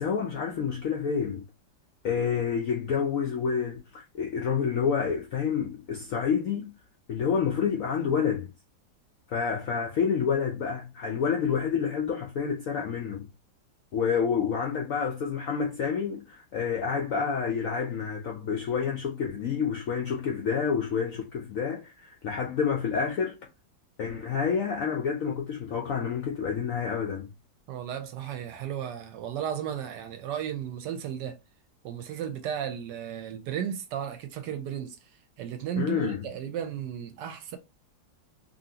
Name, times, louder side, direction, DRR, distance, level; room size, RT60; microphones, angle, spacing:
voice 1, 0.0-1.4 2.0-6.7 7.1-8.5 9.3-13.3 13.9-23.4 24.0-27.3 35.8-36.2, left 6 dB, 75° left, 0.7 m, -28 dB
voice 2, 27.7-31.4 31.8-35.0 35.4-37.6, right 9 dB, 75° right, 1.1 m, -34 dB
2.8 x 2.8 x 2.7 m
omnidirectional pair, 2.0 m